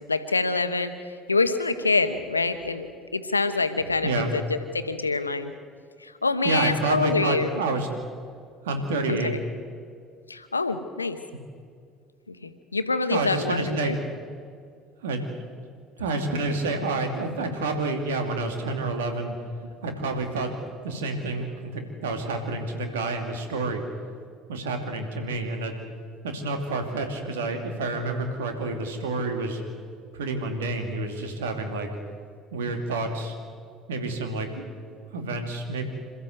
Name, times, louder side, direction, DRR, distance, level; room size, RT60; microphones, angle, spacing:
voice 1, 0.1-2.9 3.1-5.5 6.0-7.5 9.1-9.4 10.3-11.2 12.3-14.0, left 3 dB, 90° left, 9 dB, 1.0 m, -26 dB
voice 2, 6.4-7.9 8.6-9.3 13.1-13.9 15.0-15.2 16.0-19.4 19.6-20.5 20.8-23.8 24.5-25.7 26.2-29.6 30.1-31.9 32.5-33.4 33.9-34.7 35.0-35.8, right 2 dB, 75° right, 5 dB, 2.6 m, -29 dB
27.5 x 14.0 x 7.9 m, 2.2 s
figure-of-eight pair, 60°, 0 cm